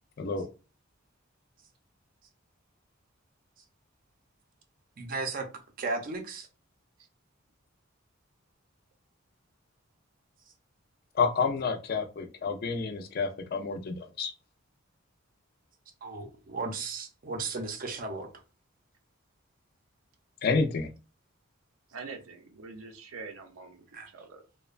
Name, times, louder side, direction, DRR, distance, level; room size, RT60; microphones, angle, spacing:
voice 1, 0.2-0.5 11.1-14.3 20.4-20.9, left 4 dB, 50° left, 0.4 m, -29 dB
voice 2, 5.0-5.5 5.8-6.5 16.0-18.3 23.9-24.1, right 3 dB, 45° right, 0.5 m, -35 dB
voice 3, 21.9-24.4, right 4 dB, 90° right, 0.5 m, -45 dB
2.9 x 2.1 x 2.4 m
head